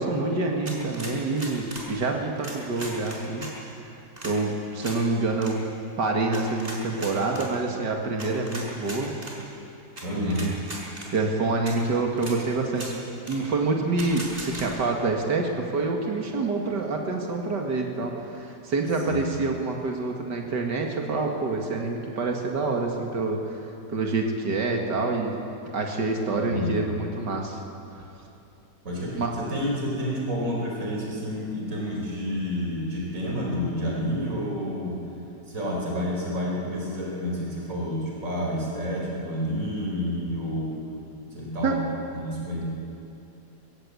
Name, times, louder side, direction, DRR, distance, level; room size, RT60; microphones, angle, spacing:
voice 1, 0.0-3.5 4.2-5.6 6.0-9.1 10.1-10.5 11.1-13.0 13.3-25.3 25.7-27.6 29.1-29.3 41.6-41.8, right 3 dB, 85° right, 1 dB, 2.6 m, -27 dB
sound 1, 0.6-1.9 2.4-3.5 4.2-4.3 4.8-5.0 5.3-5.5 6.3-7.5 8.2-9.3 10.0-10.1 10.3-11.1 11.6-11.7 12.2-12.4 12.7-12.9 13.3-13.4 14.0-14.7, right 1 dB, 30° right, 5.0 m, -38 dB
voice 2, 10.0-10.5 19.1-19.3 26.4-26.8 28.8-35.0 35.5-40.8 41.3-41.8 42.1-42.6, equal, 50° right, -2 dB, 4.9 m, -29 dB
23.0 x 20.5 x 8.3 m, 2.7 s
omnidirectional pair, 1.8 m